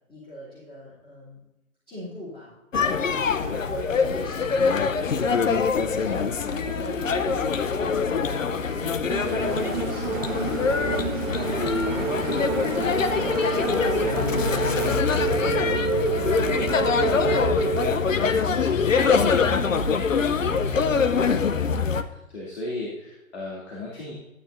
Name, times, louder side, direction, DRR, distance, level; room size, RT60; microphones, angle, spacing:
voice 1, 0.1-1.4 1.9-2.5 3.0-8.5 8.8-12.4 12.8-14.9 15.2-16.2 17.3-20.8, left 1 dB, 10° left, -11 dB, 3.2 m, -41 dB
sound 1, 2.7-22.0, left 5 dB, 65° left, 0.8 m, -24 dB
sound 2, 8.3-18.0, right 7 dB, 85° right, 0.9 m, -30 dB
Engine, 9.1-14.9, right 5 dB, 35° right, 1.1 m, -33 dB
voice 2, 22.3-24.1, left 1 dB, 50° left, -5 dB, 2.7 m, -35 dB
12.5 x 9.3 x 2.6 m, 0.96 s
figure-of-eight pair, 130°, 42 cm